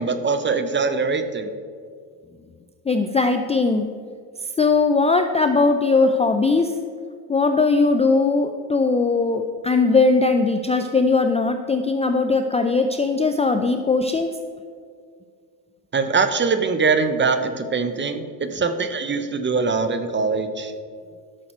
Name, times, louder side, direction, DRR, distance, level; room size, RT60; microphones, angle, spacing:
voice 1, 0.0-1.5 15.9-20.7, right 4 dB, 25° right, 9 dB, 0.9 m, -22 dB
voice 2, 2.9-3.9 4.6-6.7 7.3-14.4, left 3 dB, 15° left, 6 dB, 0.4 m, -19 dB
12.0 x 6.5 x 4.4 m, 2.1 s
supercardioid pair, 90°, 47 cm